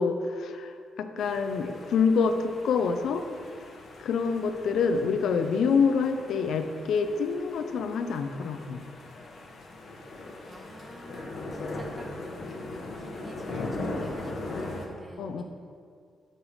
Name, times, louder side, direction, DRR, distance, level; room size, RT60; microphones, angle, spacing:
voice 1, 0.0-3.2 4.0-8.8 15.2-15.4, left 5 dB, 80° left, 8 dB, 0.4 m, -26 dB
sound 1, 1.2-14.9, left 2 dB, 60° left, 0.8 m, -40 dB
voice 2, 1.6-2.4 10.4-12.1 12.7-15.4, right 1 dB, 25° right, -1 dB, 1.0 m, -49 dB
7.9 x 5.5 x 3.2 m, 2.3 s
wide cardioid pair, 155°, 0 cm